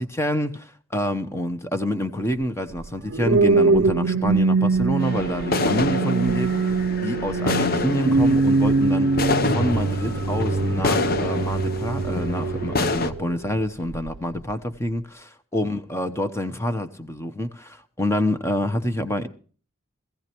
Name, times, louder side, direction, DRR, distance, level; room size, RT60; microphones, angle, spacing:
voice 1, 0.0-15.0 15.5-19.3, left 1 dB, 15° left, 0.9 m, -27 dB
sound 1, 2.8-13.3 13.9-14.2, right 3 dB, 60° right, 0.5 m, -22 dB
sound 2, 5.0-13.1, left 3 dB, 45° left, 0.8 m, -27 dB
19.5 x 15.0 x 3.0 m
head